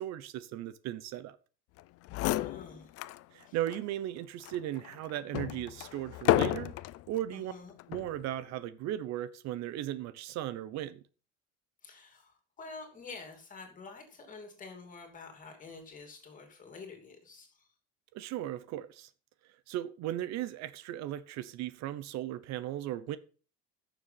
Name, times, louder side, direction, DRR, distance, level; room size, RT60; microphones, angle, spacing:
voice 1, 0.0-1.4 3.3-6.8 7.1-7.5 7.9-11.0 18.1-19.1 19.7-23.2, right 12 dB, 65° right, 0.9 m, -37 dB
sound 1, 1.8-1.9 2.1-3.2 3.7-3.8 4.4-7.0 7.8-8.2, left 16 dB, 55° left, 0.5 m, -31 dB
voice 2, 2.2-2.9 3.5-3.6 7.3-7.7 11.8-17.7, left 4 dB, 25° left, 3.0 m, -48 dB
11.5 x 7.1 x 5.7 m
cardioid pair, 165°, 29 cm